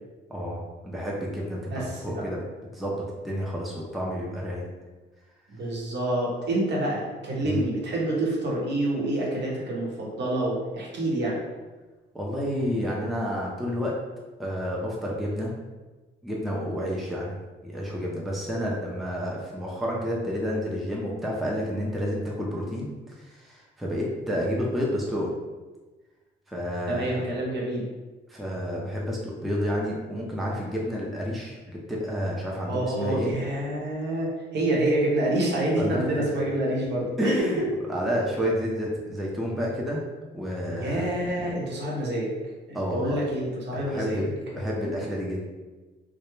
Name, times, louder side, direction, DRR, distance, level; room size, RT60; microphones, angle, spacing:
voice 1, 0.3-2.4 2.7-4.7 7.4-7.6 12.1-14.0 14.4-15.5 16.2-22.9 23.2-25.3 26.5-27.3 28.3-33.3 35.8-36.3 37.2-37.6 37.9-40.0 40.3-41.1 42.7-43.2 43.7-45.4, equal, ahead, -4 dB, 0.4 m, -30 dB
voice 2, 1.7-2.2 5.5-11.4 26.9-27.9 32.6-37.5 40.7-42.3 42.7-44.2, right 1 dB, 60° right, -4 dB, 0.9 m, -27 dB
2.2 x 2.0 x 3.0 m, 1.2 s
cardioid pair, 90°, 20 cm